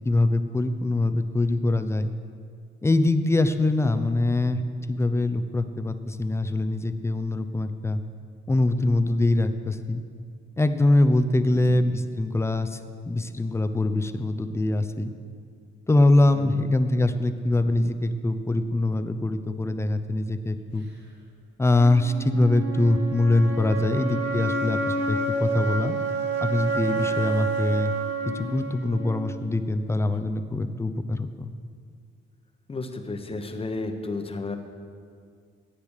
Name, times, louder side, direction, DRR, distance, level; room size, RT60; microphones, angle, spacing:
voice 1, 0.0-2.1 2.8-4.6 4.9-8.0 8.5-10.0 10.6-12.8 13.1-15.1 15.9-20.9 21.6-26.0 26.4-27.9 28.3-31.5, left 2 dB, 15° left, 9 dB, 0.7 m, -23 dB
voice 2, 16.3-16.7 32.7-34.6, left 3 dB, 30° left, 6 dB, 1.1 m, -33 dB
sound 1, 21.7-29.7, right 3 dB, 60° right, 2.1 m, -29 dB
10.5 x 8.3 x 6.5 m, 2.2 s
cardioid pair, 90°, 20 cm